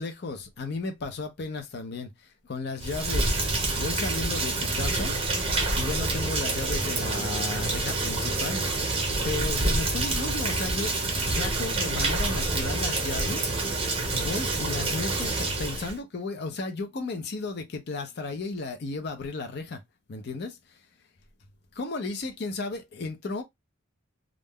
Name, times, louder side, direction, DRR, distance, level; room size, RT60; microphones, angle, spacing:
voice 1, 0.0-5.2 5.5-8.6 9.2-19.8 20.1-20.8 21.7-23.4, left 3 dB, 55° left, 0.5 m, -34 dB
Rain, 2.8-16.0, right 2 dB, 30° right, 0.9 m, -27 dB
2.4 x 2.2 x 3.4 m
head